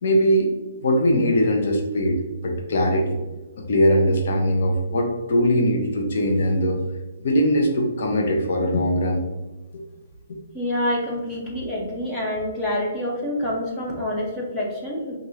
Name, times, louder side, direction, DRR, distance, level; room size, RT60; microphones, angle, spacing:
voice 1, 0.0-0.5 0.8-2.2 2.4-3.2 3.6-6.8 7.2-9.2 9.7-9.8, equal, 60° left, 2 dB, 0.8 m, -21 dB
voice 2, 10.5-15.2, left 1 dB, 15° left, -4 dB, 0.8 m, -27 dB
4.7 x 2.6 x 2.8 m, 1.1 s
hypercardioid pair, 160°, 0 cm